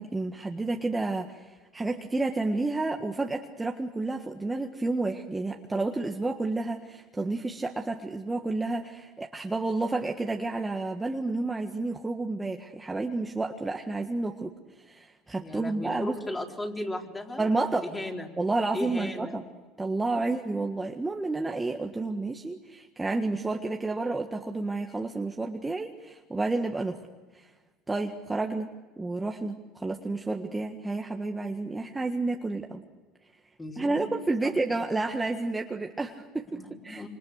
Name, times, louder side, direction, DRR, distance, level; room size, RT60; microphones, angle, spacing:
voice 1, 0.0-14.5 14.8-16.2 17.4-17.9 18.4-19.4 19.8-27.0 27.3-27.5 27.9-32.8 33.8-36.5 36.8-37.0, right 2 dB, 10° right, 2 dB, 1.6 m, -30 dB
voice 2, 15.4-17.5 17.8-18.3 18.7-19.4 20.1-20.2 20.6-20.7 33.6-34.1 34.4-34.5 36.5-37.1, left 1 dB, 15° left, 1 dB, 4.3 m, -36 dB
27.5 x 26.0 x 6.6 m, 1.3 s
supercardioid pair, 105°, 0 cm